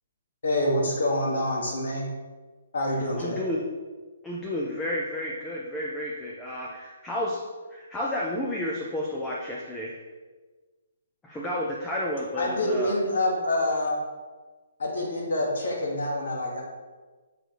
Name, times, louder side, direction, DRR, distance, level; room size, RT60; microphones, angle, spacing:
voice 1, 0.4-2.1 2.7-3.4 12.4-14.0 14.8-16.6, left 1 dB, 60° left, -2 dB, 1.8 m, -26 dB
voice 2, 3.2-3.6 4.2-7.4 7.7-10.0 11.2-13.0, left 1 dB, 5° left, -4 dB, 0.5 m, -31 dB
6.5 x 4.7 x 3.9 m, 1.3 s
hypercardioid pair, 170°, 0 cm